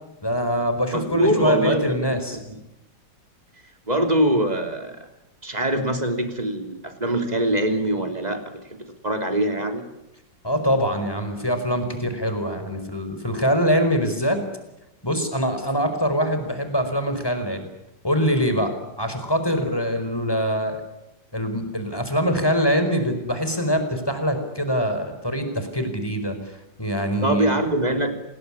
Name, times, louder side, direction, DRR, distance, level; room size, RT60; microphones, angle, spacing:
voice 1, 0.2-2.4 10.4-14.4 15.0-17.7 18.0-20.8 21.3-26.4 26.8-27.6, equal, 10° left, 7 dB, 4.8 m, -23 dB
voice 2, 0.9-2.2 2.5-2.6 3.9-5.1 5.4-9.9 27.2-28.1, right 1 dB, 20° right, 6 dB, 3.3 m, -23 dB
28.0 x 20.5 x 10.0 m, 0.89 s
omnidirectional pair, 2.0 m